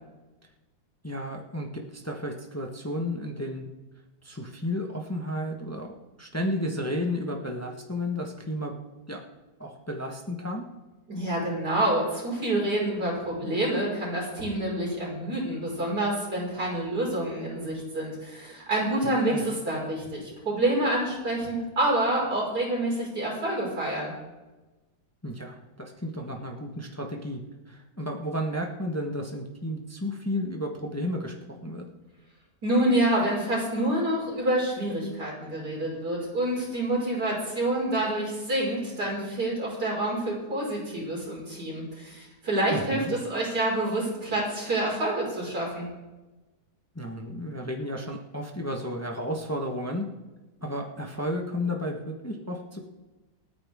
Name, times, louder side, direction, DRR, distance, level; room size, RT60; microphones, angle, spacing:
voice 1, 1.0-3.6 4.2-5.9 6.2-8.7 9.1-9.2 9.6-10.7 19.0-19.4 25.2-27.4 27.7-31.3 31.6-31.9 42.7-43.1 46.9-50.1 50.6-52.8, left 1 dB, 10° left, 2 dB, 1.3 m, -32 dB
voice 2, 11.1-24.1 32.6-45.9, right 1 dB, 85° right, -4 dB, 6.0 m, -27 dB
27.0 x 9.8 x 3.7 m, 1.1 s
omnidirectional pair, 1.7 m